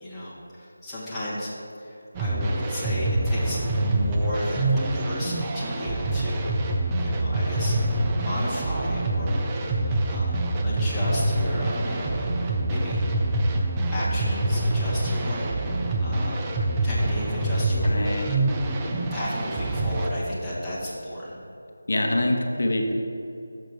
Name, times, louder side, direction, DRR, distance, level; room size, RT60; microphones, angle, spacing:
voice 1, 0.0-6.5 7.0-7.8 8.0-9.4 9.7-9.8 10.1-10.4 10.6-12.1 12.7-13.0 13.9-17.9 19.1-21.4, equal, 5° left, -12 dB, 1.1 m, -34 dB
sound 1, 2.1-20.1, right 1 dB, 15° right, 0.4 m, -25 dB
voice 2, 17.8-18.4 21.9-22.9, left 1 dB, 60° left, 2 dB, 0.9 m, -25 dB
6.6 x 5.1 x 6.2 m, 2.8 s
figure-of-eight pair, 170°, 0 cm